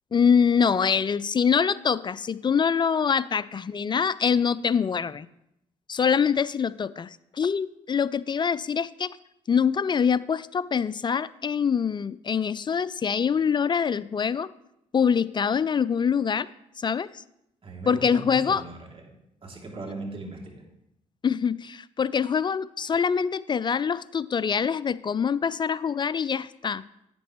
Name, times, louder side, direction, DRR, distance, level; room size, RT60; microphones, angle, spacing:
voice 1, 0.1-5.3 5.9-9.2 9.5-14.5 14.9-16.5 16.8-17.2 17.9-18.6 21.2-26.8, left 6 dB, 30° left, 18 dB, 0.4 m, -24 dB
voice 2, 17.6-20.6, right 2 dB, 35° right, 0 dB, 2.7 m, -39 dB
10.5 x 8.7 x 3.1 m, 0.80 s
hypercardioid pair, 50°, 15 cm